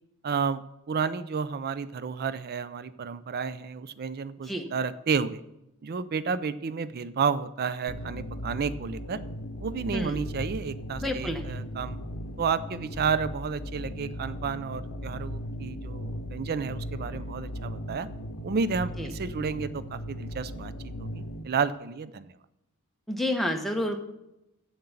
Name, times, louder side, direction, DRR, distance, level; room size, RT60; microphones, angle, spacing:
voice 1, 0.2-5.4 5.8-9.2 9.6-12.0 12.4-18.1 18.4-22.3, right 5 dB, 45° right, 15 dB, 0.4 m, -31 dB
sound 1, 7.9-21.4, equal, 65° left, 0.8 m, -37 dB
voice 2, 11.0-11.6 19.0-19.1 23.1-24.0, left 1 dB, ahead, 2 dB, 1.0 m, -29 dB
7.9 x 7.6 x 7.2 m, 0.91 s
head